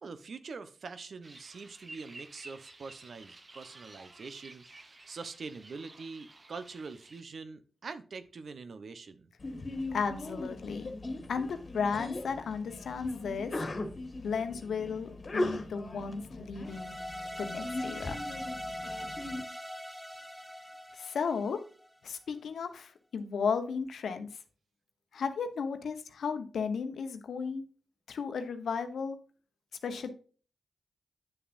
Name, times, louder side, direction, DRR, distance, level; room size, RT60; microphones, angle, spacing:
voice 1, 0.0-9.3, right 4 dB, 70° right, 11 dB, 0.8 m, -44 dB
sound 1, 1.2-7.2, right 2 dB, 45° right, 1.0 m, -52 dB
Sneeze, 9.4-19.4, left 2 dB, 50° left, 1.6 m, -39 dB
voice 2, 9.9-10.9 11.3-13.6 14.2-16.9 17.4-18.2 20.9-21.6 22.0-24.3 25.1-27.6 28.1-29.2 29.8-30.1, left 5 dB, 80° left, 8 dB, 0.9 m, -34 dB
sound 2, 16.6-21.9, equal, ahead, 0.6 m, -41 dB
9.3 x 6.9 x 2.5 m, 0.39 s
supercardioid pair, 40°, 0 cm